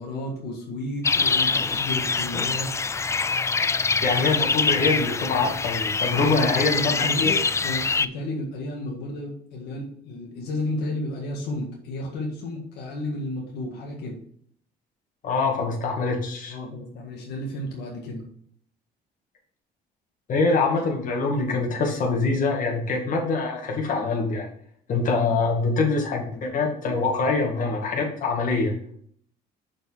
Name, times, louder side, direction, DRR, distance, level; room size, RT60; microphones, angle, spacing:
voice 1, 0.0-2.7 6.2-14.2 16.5-18.2, left 1 dB, 75° left, -1 dB, 1.8 m, -32 dB
sound 1, 1.0-8.1, left 4 dB, 15° left, 0.3 m, -24 dB
voice 2, 4.0-7.3 15.2-16.6 20.3-24.5 24.9-28.7, left 3 dB, 50° left, 0 dB, 2.2 m, -24 dB
6.6 x 5.0 x 4.6 m, 0.63 s
cardioid pair, 110°, 17 cm